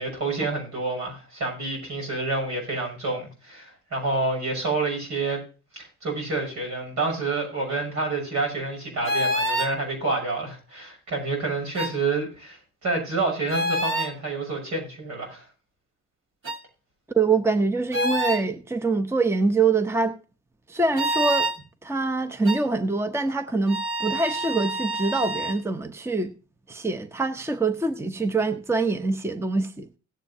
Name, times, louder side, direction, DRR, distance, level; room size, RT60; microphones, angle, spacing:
voice 1, 0.0-5.4 5.7-15.5, right 3 dB, 70° right, 6.6 m, -28 dB
sound 1, 9.0-9.7 11.8-11.9 13.5-14.1 16.4-16.6 17.9-18.4 21.0-21.6 22.5-22.6 23.7-25.6, right 1 dB, 45° right, 1.3 m, -27 dB
voice 2, 17.1-20.1 20.7-21.5 21.8-26.3 26.7-29.9, right 3 dB, 10° right, 0.8 m, -24 dB
17.0 x 8.3 x 2.7 m
cardioid pair, 90°, 30 cm